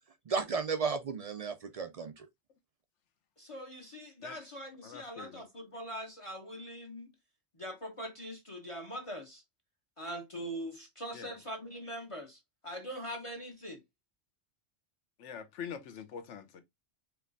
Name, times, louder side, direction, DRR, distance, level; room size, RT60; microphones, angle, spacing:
voice 1, 0.3-2.3, right 5 dB, 65° right, 0.3 m, -34 dB
voice 2, 3.4-7.1 7.6-9.4 10.0-13.8, equal, 35° left, 0.7 m, -42 dB
voice 3, 4.8-5.4 11.1-11.4 15.2-16.6, left 7 dB, 85° left, 1.1 m, -44 dB
4.5 x 3.1 x 2.6 m
omnidirectional pair, 1.2 m